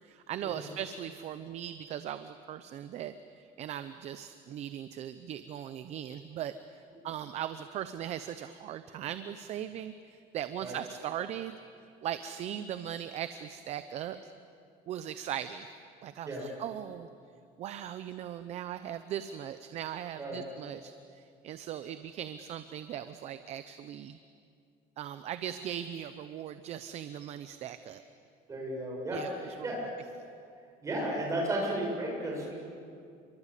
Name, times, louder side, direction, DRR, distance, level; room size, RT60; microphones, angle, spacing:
voice 1, 0.0-6.5 7.0-11.6 12.0-14.3 14.9-15.7 16.0-17.1 17.6-24.2 25.0-28.0 29.1-29.9, right 10 dB, 40° right, 11 dB, 0.7 m, -39 dB
voice 2, 28.5-29.8 30.8-32.5, right 1 dB, 20° right, -2 dB, 6.7 m, -34 dB
28.0 x 23.5 x 8.4 m, 2.4 s
cardioid pair, 180°, 17 cm